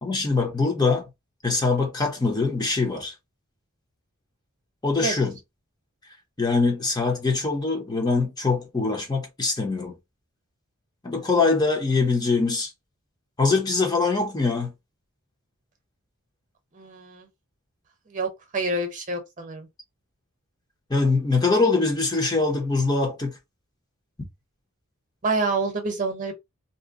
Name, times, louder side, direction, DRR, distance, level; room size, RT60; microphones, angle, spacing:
voice 1, 0.0-1.1 1.4-3.1 4.8-5.3 6.4-9.9 11.0-12.7 13.4-14.7 20.9-23.4, left 3 dB, 20° left, 0.6 m, -23 dB
voice 2, 16.7-17.3 18.1-19.7 25.2-26.3, right 3 dB, 35° right, 0.8 m, -27 dB
2.7 x 2.1 x 3.6 m
head